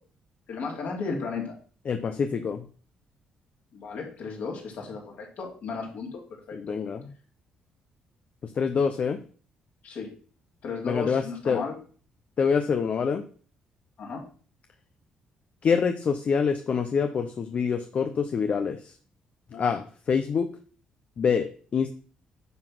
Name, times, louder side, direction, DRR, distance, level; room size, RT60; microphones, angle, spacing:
voice 1, 0.5-1.5 3.7-6.8 9.8-10.1 10.6-11.8 14.0-14.2 19.5-19.8, left 4 dB, 70° left, 0 dB, 3.3 m, -35 dB
voice 2, 1.9-2.6 6.5-7.1 8.4-9.2 10.8-11.6 12.4-13.3 15.6-18.9 19.6-20.5 21.2-21.9, left 6 dB, 50° left, 7 dB, 0.8 m, -26 dB
9.5 x 3.9 x 6.1 m, 0.42 s
supercardioid pair, 60°, 3 cm